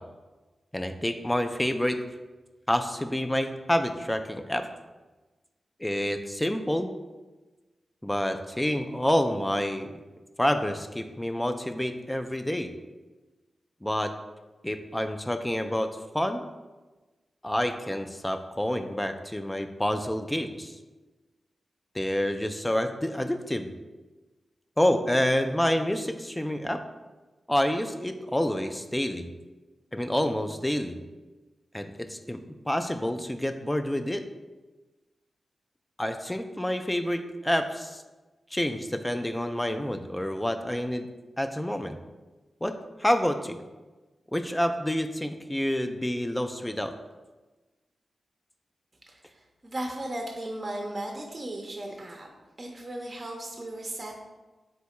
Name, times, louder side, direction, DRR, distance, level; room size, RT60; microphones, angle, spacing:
voice 1, 0.7-2.0 2.7-4.7 5.8-6.9 8.0-9.9 10.4-12.7 13.8-14.1 14.6-16.4 17.4-20.8 21.9-23.7 24.8-26.8 27.5-29.3 29.9-31.0 31.7-32.4 32.7-34.2 36.0-38.0 38.5-41.1 41.4-42.0 42.6-43.6 44.3-46.9, left 1 dB, 10° left, 7 dB, 0.3 m, -28 dB
voice 2, 49.1-52.3 52.6-54.2, right 1 dB, 45° right, 1 dB, 0.5 m, -36 dB
3.5 x 2.8 x 4.2 m, 1.2 s
cardioid pair, 50°, 0 cm